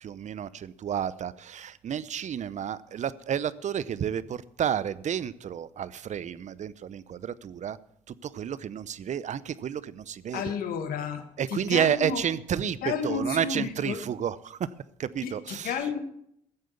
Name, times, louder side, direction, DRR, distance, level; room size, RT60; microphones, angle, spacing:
voice 1, 0.0-7.8 8.1-10.5 11.4-14.6 15.0-15.9, right 9 dB, 50° right, 18 dB, 0.7 m, -31 dB
voice 2, 10.3-12.2 12.8-14.0 15.2-16.0, left 6 dB, 70° left, 8 dB, 1.6 m, -32 dB
14.5 x 7.5 x 7.0 m, 0.73 s
hypercardioid pair, 60°, 15 cm